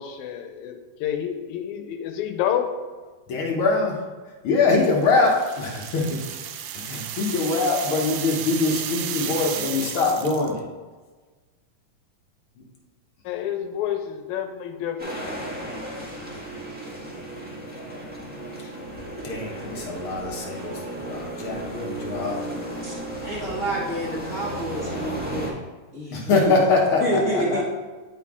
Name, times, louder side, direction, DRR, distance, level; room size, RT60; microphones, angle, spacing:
voice 1, 0.0-2.7 13.3-15.2, left 10 dB, 85° left, 6 dB, 2.0 m, -29 dB
voice 2, 3.3-3.9 4.4-6.2 6.8-10.6 19.2-22.4 26.1-27.0 27.3-27.6, left 3 dB, 60° left, -1 dB, 1.5 m, -23 dB
sound 1, 5.0-10.6, right 9 dB, 85° right, 1.3 m, -33 dB
sound 2, 15.0-25.5, right 1 dB, 10° right, 0.5 m, -34 dB
voice 3, 23.2-25.5 25.9-26.5 27.0-27.6, right 1 dB, 45° left, -8 dB, 1.0 m, -28 dB
10.0 x 4.4 x 3.6 m, 1.3 s
omnidirectional pair, 3.3 m